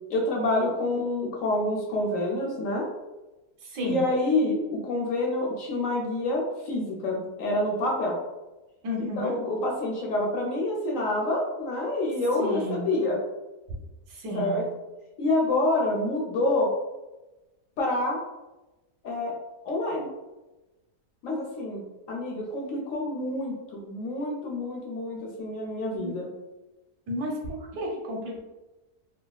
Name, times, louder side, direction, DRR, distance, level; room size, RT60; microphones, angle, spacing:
voice 1, 0.1-2.8 3.8-8.2 9.0-13.2 14.3-14.6 15.2-16.7 17.8-18.2 19.0-19.3 19.6-20.1 21.2-26.3, left 2 dB, 65° left, -2 dB, 0.8 m, -27 dB
voice 2, 3.6-4.1 8.8-9.3 12.4-12.9 14.1-14.6 26.0-26.1 27.1-28.4, equal, 90° right, -1 dB, 1.3 m, -32 dB
3.3 x 2.3 x 2.2 m, 1.1 s
omnidirectional pair, 1.7 m